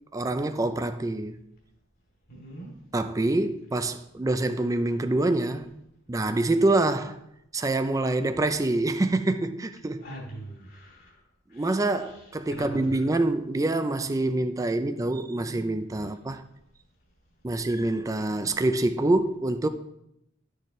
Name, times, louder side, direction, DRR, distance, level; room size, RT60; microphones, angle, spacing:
voice 1, 0.1-1.4 2.9-5.7 6.1-7.2 7.5-10.0 11.5-16.4 17.4-19.7, right 2 dB, 15° right, 0.4 m, -26 dB
voice 2, 2.3-2.7 10.0-11.1 11.5-13.2, right 1 dB, 50° left, 2.8 m, -42 dB
11.5 x 6.6 x 3.1 m
head